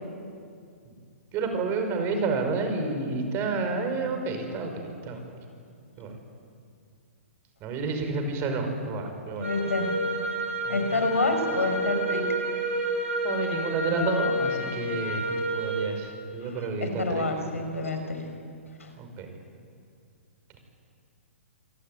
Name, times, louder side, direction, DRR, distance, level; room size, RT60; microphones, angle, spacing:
voice 1, 1.3-5.2 6.0-6.1 7.6-9.5 10.6-11.1 13.2-17.3 19.0-19.3, right 3 dB, 30° right, 5 dB, 5.7 m, -30 dB
voice 2, 9.4-9.9 10.7-12.2 16.4-18.3 18.8-18.9, left 2 dB, 90° left, 5 dB, 5.5 m, -28 dB
sound 1, 9.4-15.9, right 1 dB, 80° right, 6.8 m, -30 dB
26.5 x 18.5 x 9.5 m, 2.3 s
hypercardioid pair, 130°, 7 cm